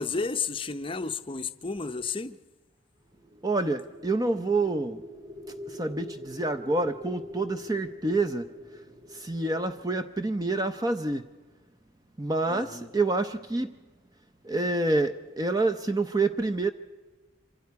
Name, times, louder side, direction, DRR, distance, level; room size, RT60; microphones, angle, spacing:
voice 1, 0.0-2.4 12.5-12.9, left 4 dB, 25° left, 0.6 m, -32 dB
sound 1, 3.2-11.3, left 1 dB, 45° right, 3.3 m, -45 dB
voice 2, 3.4-5.0 5.8-8.5 9.1-11.2 12.2-13.7 14.4-16.7, right 2 dB, 20° right, 0.6 m, -27 dB
26.0 x 25.5 x 4.7 m
head